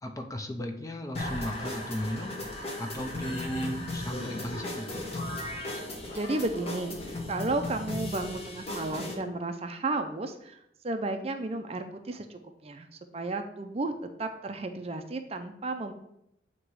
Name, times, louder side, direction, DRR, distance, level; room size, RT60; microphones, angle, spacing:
voice 1, 0.0-2.4 2.8-5.0, equal, 20° left, 4 dB, 0.5 m, -35 dB
sound 1, 1.1-9.1, left 1 dB, 35° left, 1.2 m, -36 dB
voice 2, 6.1-7.0 7.3-12.9 13.1-15.9, right 2 dB, 35° right, 7 dB, 0.4 m, -33 dB
7.9 x 2.9 x 4.6 m, 0.78 s
head